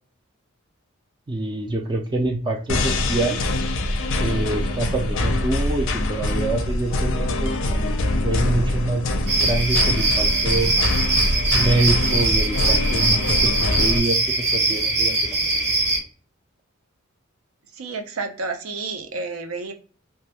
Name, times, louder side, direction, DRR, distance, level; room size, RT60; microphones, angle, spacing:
voice 1, 1.3-3.5 4.2-7.8 8.2-9.1 9.4-10.7 11.5-15.7, right 2 dB, 20° right, 2 dB, 0.3 m, -26 dB
sound 1, 2.7-14.0, left 1 dB, 65° left, 0.4 m, -24 dB
sound 2, 9.3-16.0, right 2 dB, 50° right, 0.8 m, -21 dB
voice 2, 17.7-19.7, right 4 dB, 80° right, 6 dB, 0.5 m, -30 dB
2.3 x 2.0 x 2.8 m, 0.40 s
head